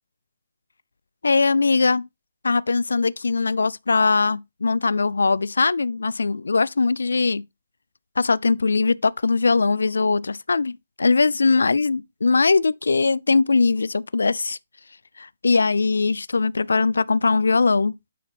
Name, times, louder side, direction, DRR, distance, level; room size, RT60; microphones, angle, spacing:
voice 1, 1.2-2.0 2.4-7.4 8.2-14.6 15.2-17.9, left 4 dB, 85° left, 0.3 m, -21 dB
9.1 x 4.3 x 4.1 m
hypercardioid pair, 150°, 0 cm